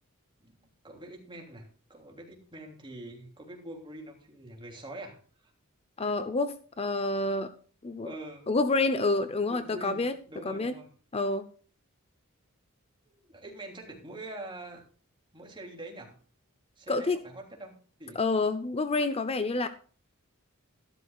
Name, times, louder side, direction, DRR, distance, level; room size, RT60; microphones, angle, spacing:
voice 1, 0.8-5.5 8.0-8.5 9.5-10.9 13.1-14.8 15.3-16.2 16.8-18.2, right 1 dB, 25° right, 1 dB, 3.1 m, -45 dB
voice 2, 6.0-7.5 7.8-8.1 8.5-10.1 10.4-10.7 11.1-11.5 16.9-17.2 18.2-19.7, left 3 dB, 30° left, 11 dB, 0.6 m, -28 dB
14.0 x 12.0 x 2.4 m, 0.41 s
head